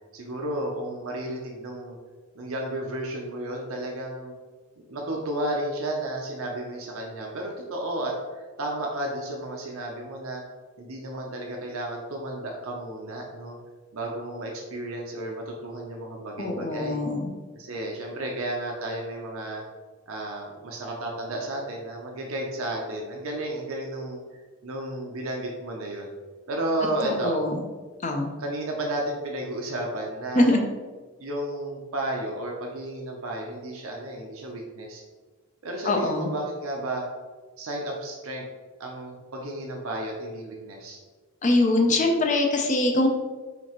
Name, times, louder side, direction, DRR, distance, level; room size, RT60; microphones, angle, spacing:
voice 1, 0.1-2.0 2.3-4.3 4.9-10.4 10.8-13.6 13.9-17.0 17.6-19.6 20.1-24.2 24.6-26.1 26.5-27.4 28.4-30.5 31.2-35.0 35.6-37.0 37.6-38.4 38.8-41.0, right 1 dB, 65° right, 0 dB, 0.6 m, -32 dB
voice 2, 16.4-17.3 27.0-27.6 28.0-28.3 30.3-30.6 35.8-36.3 41.4-43.1, left 2 dB, 35° left, 3 dB, 0.5 m, -23 dB
5.1 x 2.8 x 2.9 m, 1.4 s
head